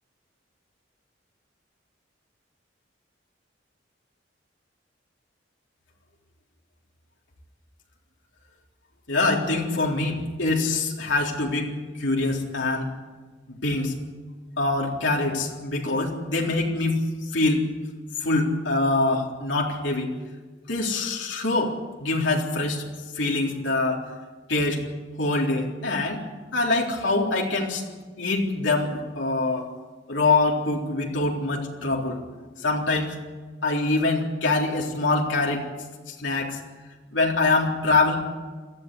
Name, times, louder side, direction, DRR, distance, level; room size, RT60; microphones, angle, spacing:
voice 1, 9.1-12.9 13.5-13.9 14.6-17.0 17.3-17.7 18.2-20.1 20.7-22.8 23.2-24.0 24.5-24.8 25.2-26.2 26.5-27.8 28.2-29.7 30.1-32.2 32.6-33.1 33.6-35.6 36.1-36.6 37.1-38.2, left 2 dB, 85° left, -1 dB, 3.9 m, -24 dB
21.5 x 14.5 x 9.8 m, 1.3 s
head